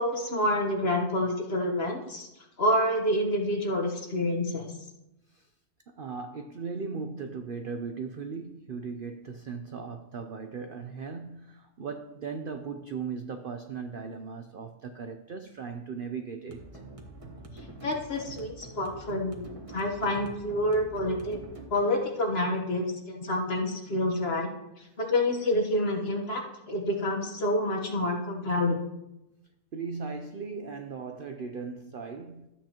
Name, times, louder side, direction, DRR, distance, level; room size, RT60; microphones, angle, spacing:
voice 1, 0.0-2.3 2.6-4.7 17.8-21.4 21.7-24.5 25.0-26.4 26.7-28.8, left 1 dB, 40° left, 2 dB, 1.4 m, -28 dB
voice 2, 5.9-16.8 29.7-32.5, right 5 dB, 65° right, 6 dB, 0.5 m, -38 dB
sound 1, 16.5-23.5, right 2 dB, 25° right, 1.2 m, -46 dB
13.0 x 8.5 x 2.9 m, 0.92 s
omnidirectional pair, 1.6 m